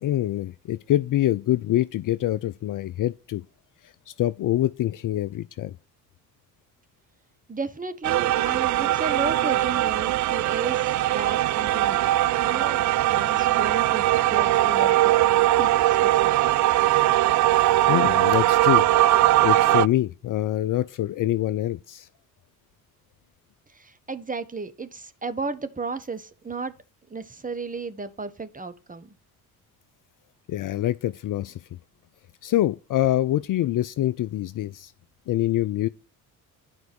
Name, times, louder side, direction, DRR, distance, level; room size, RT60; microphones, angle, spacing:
voice 1, 0.0-3.4 3.8-5.7 17.6-18.9 19.4-22.1 30.5-31.6 32.4-34.9 35.3-35.9, left 13 dB, 45° left, 0.6 m, -25 dB
voice 2, 7.5-12.0 12.4-12.8 13.1-15.1 15.5-16.5 23.7-26.7 27.1-29.1, right 4 dB, 20° right, 1.3 m, -34 dB
sound 1, 8.0-19.9, right 15 dB, 45° right, 0.4 m, -20 dB
9.4 x 4.6 x 6.2 m
hypercardioid pair, 50°, 44 cm